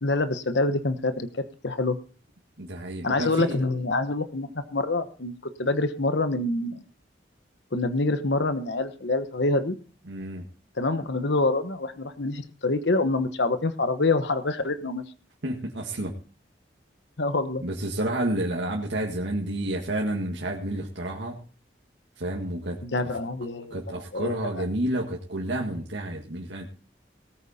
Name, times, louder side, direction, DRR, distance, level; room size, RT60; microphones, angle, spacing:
voice 1, 0.0-2.0 3.0-6.8 7.7-9.8 10.8-15.0 17.2-17.6 22.8-23.8 24.1-24.6, left 2 dB, 75° left, 10 dB, 1.1 m, -26 dB
voice 2, 2.6-3.6 10.1-10.4 15.4-16.1 17.6-21.4 22.2-23.1 23.7-26.7, right 1 dB, 80° right, -1 dB, 1.8 m, -30 dB
18.5 x 8.7 x 4.2 m, 0.38 s
head